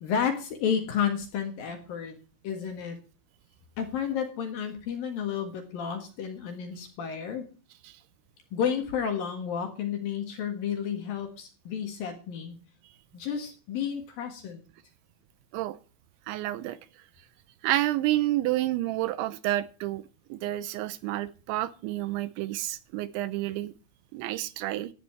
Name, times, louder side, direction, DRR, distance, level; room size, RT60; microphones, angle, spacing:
voice 1, 0.0-2.2 2.4-3.0 3.8-7.5 8.5-12.6 13.1-14.6, left 7 dB, 60° left, 5 dB, 2.8 m, -31 dB
voice 2, 16.3-16.8 17.6-20.0 20.3-23.7 24.1-24.9, right 15 dB, 80° right, 15 dB, 2.9 m, -29 dB
15.0 x 9.6 x 4.5 m, 0.35 s
omnidirectional pair, 5.5 m